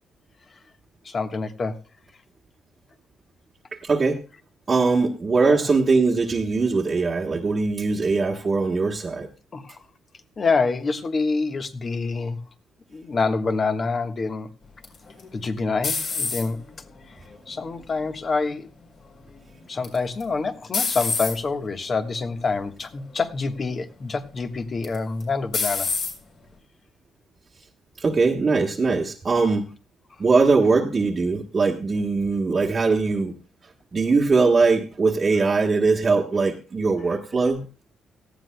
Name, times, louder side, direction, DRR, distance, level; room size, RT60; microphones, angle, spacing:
voice 1, 1.0-1.8 5.4-5.6 9.5-9.8 10.4-12.4 12.9-14.5 15.3-16.6 17.5-18.7 19.7-25.9, left 4 dB, 40° left, 7 dB, 1.4 m, -26 dB
voice 2, 3.7-4.2 4.7-9.3 28.0-29.7 30.2-33.3 33.9-37.6, right 4 dB, 35° right, -1 dB, 1.3 m, -21 dB
sound 1, 14.8-16.7 17.3-17.8 19.8-20.2 20.7-21.4 22.1-22.4 22.8-22.9 24.8-25.2 25.5-26.1, left 4 dB, 65° left, 4.4 m, -27 dB
17.5 x 14.0 x 2.2 m, 0.33 s
cardioid pair, 90°, 0 cm